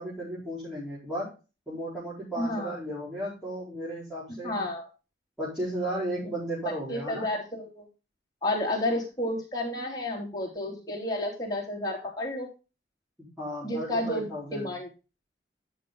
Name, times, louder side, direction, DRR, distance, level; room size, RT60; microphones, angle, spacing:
voice 1, 0.0-1.3 1.7-4.7 5.4-7.3 13.4-14.7, right 1 dB, ahead, -12 dB, 4.4 m, -34 dB
voice 2, 2.4-2.8 4.4-4.9 6.9-7.9 8.4-12.5 13.6-14.9, left 1 dB, 20° left, -3 dB, 3.3 m, -31 dB
11.0 x 6.5 x 3.8 m, 0.31 s
head